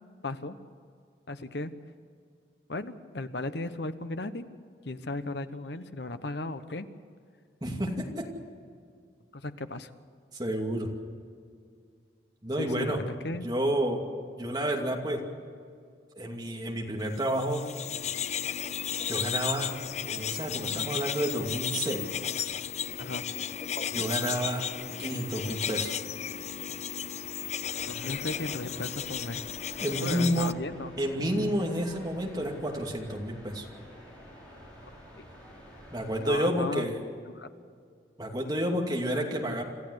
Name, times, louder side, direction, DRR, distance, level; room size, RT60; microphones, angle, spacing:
voice 1, 0.2-0.6 1.3-1.7 2.7-4.4 4.8-6.9 9.3-9.9 12.6-13.4 23.0-23.3 27.9-29.4 29.9-30.9 34.8-35.2 36.2-36.9 37.3-37.5, left 2 dB, 65° left, 11 dB, 1.0 m, -36 dB
voice 2, 7.6-8.3 10.3-10.9 12.4-13.0 13.4-14.0 14.4-15.2 16.2-17.7 19.1-19.7 20.0-22.1 23.9-24.6 25.0-26.0 29.8-30.5 31.0-33.7 35.9-37.0 38.2-39.6, right 1 dB, 20° right, 0 dB, 2.5 m, -30 dB
sound 1, 17.3-30.5, left 8 dB, 35° left, 0.5 m, -34 dB
sound 2, 27.6-36.4, equal, 5° left, 6.3 m, -49 dB
27.0 x 14.0 x 8.1 m, 2.2 s
head